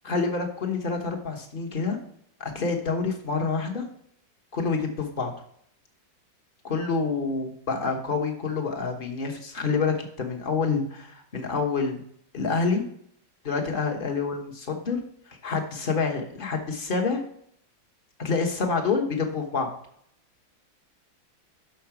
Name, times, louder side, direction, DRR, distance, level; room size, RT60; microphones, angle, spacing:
voice 1, 0.0-2.0 2.4-3.8 4.5-5.3 6.6-12.0 12.3-12.8 13.4-15.0 15.3-17.2 18.2-19.7, left 4 dB, 35° left, 3 dB, 0.9 m, -27 dB
6.2 x 5.7 x 5.9 m, 0.67 s
omnidirectional pair, 2.2 m